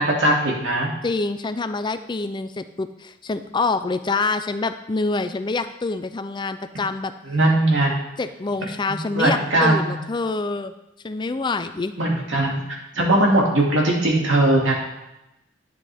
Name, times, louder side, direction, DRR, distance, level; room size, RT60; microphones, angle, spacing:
voice 1, 0.0-0.9 7.2-7.9 9.1-10.0 12.0-14.7, right 1 dB, 70° right, -2 dB, 2.5 m, -19 dB
voice 2, 1.0-7.1 8.2-10.7 11.0-11.9, left 3 dB, 25° left, 10 dB, 0.4 m, -26 dB
11.0 x 9.3 x 3.5 m, 0.89 s
head